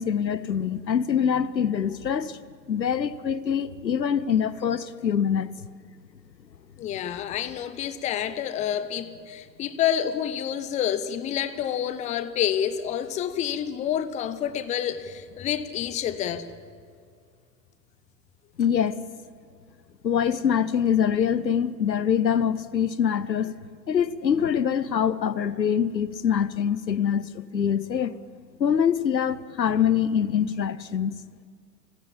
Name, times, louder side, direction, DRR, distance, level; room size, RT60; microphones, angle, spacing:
voice 1, 0.0-2.4 2.7-5.5 18.6-19.1 20.0-23.5 23.9-28.2 28.6-31.2, left 8 dB, 80° left, 17 dB, 0.8 m, -24 dB
voice 2, 6.8-16.5, left 9 dB, 15° left, 13 dB, 0.6 m, -28 dB
29.0 x 10.0 x 8.8 m, 2.2 s
figure-of-eight pair, 95°, 50 cm